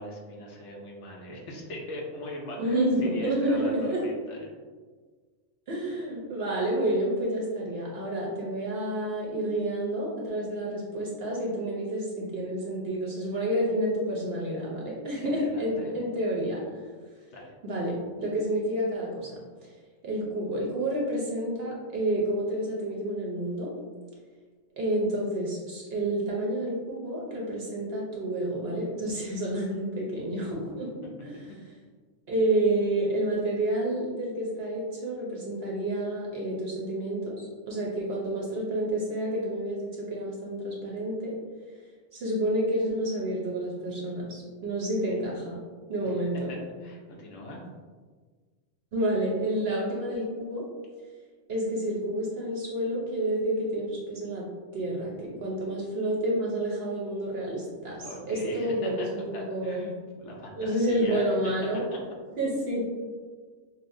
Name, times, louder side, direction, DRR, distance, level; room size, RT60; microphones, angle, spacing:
voice 1, 0.0-4.5 15.2-15.9 17.3-17.5 45.0-45.2 46.5-47.6 58.0-59.1 59.3-61.5 61.9-62.0, left 1 dB, 65° left, -1 dB, 0.9 m, -40 dB
voice 2, 2.6-4.0 5.7-16.8 17.6-19.7 20.0-23.7 24.8-30.9 31.2-31.3 32.3-41.4 42.1-45.6 45.9-46.5 48.9-50.6 51.5-54.5 54.7-59.9 60.5-61.8 62.4-62.9, right 1 dB, 55° right, -3 dB, 0.8 m, -29 dB
5.8 x 2.1 x 2.6 m, 1.5 s
omnidirectional pair, 1.4 m